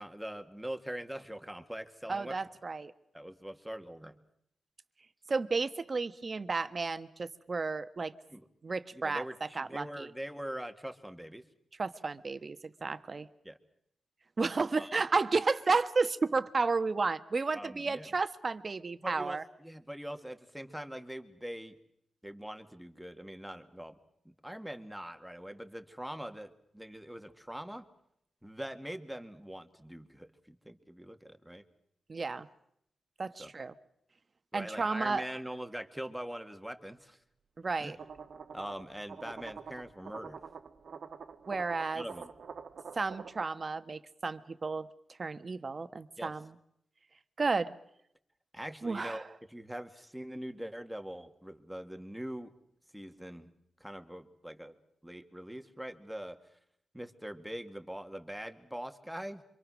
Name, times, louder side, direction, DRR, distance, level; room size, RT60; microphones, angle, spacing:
voice 1, 0.0-2.4 3.1-4.2 8.3-8.4 8.9-11.4 13.4-13.6 14.8-14.9 17.5-18.1 19.0-21.8 22.2-24.0 24.3-27.8 28.4-31.6 33.4-33.5 34.5-37.2 37.8-38.0 38.5-40.4 41.9-42.3 46.2-46.3 48.5-52.5 52.9-53.5 53.8-54.7 55.0-56.4 56.9-59.4, right 1 dB, 5° right, 7 dB, 2.0 m, -43 dB
voice 2, 2.1-2.9 5.3-8.1 8.6-9.2 9.5-10.1 11.8-13.3 14.4-19.4 32.1-32.5 33.2-33.7 34.5-35.2 37.6-38.0 41.5-42.0 42.9-44.9 45.2-46.5 47.4-47.7 48.8-49.2, right 4 dB, 40° right, 12 dB, 1.3 m, -32 dB
sound 1, 38.0-43.5, right 6 dB, 70° right, 1.4 m, -47 dB
27.0 x 25.0 x 6.3 m, 0.74 s
wide cardioid pair, 95°, 0 cm